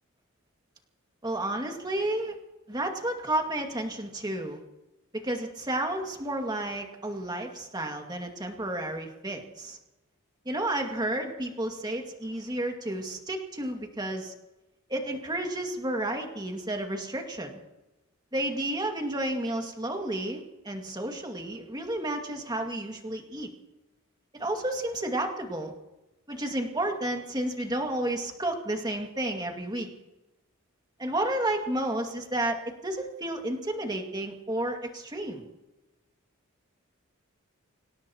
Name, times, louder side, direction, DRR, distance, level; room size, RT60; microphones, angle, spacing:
voice 1, 1.2-2.4 2.7-4.6 5.1-9.8 10.5-14.3 14.9-17.6 18.3-23.5 24.4-25.7 26.3-29.9 31.0-35.5, right 1 dB, 20° right, 3 dB, 2.2 m, -31 dB
26.5 x 17.0 x 3.0 m, 0.99 s
head